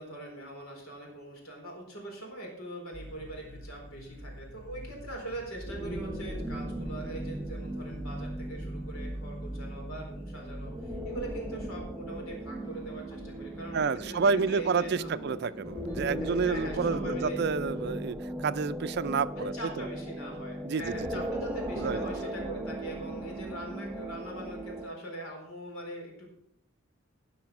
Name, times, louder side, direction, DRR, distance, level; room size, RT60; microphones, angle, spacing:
voice 1, 0.0-15.3 16.2-17.4 19.4-26.3, right 1 dB, 85° left, 0 dB, 4.3 m, -42 dB
sound 1, 2.9-11.4, right 1 dB, 60° left, 2.8 m, -43 dB
sound 2, 5.6-24.9, right 1 dB, 5° right, 1.2 m, -38 dB
sound 3, 12.5-17.9, equal, 20° left, 2.5 m, -48 dB
voice 2, 13.7-19.9 20.6-21.3 21.7-22.1, right 5 dB, 50° right, 15 dB, 0.4 m, -30 dB
16.5 x 5.6 x 6.0 m, 0.70 s
head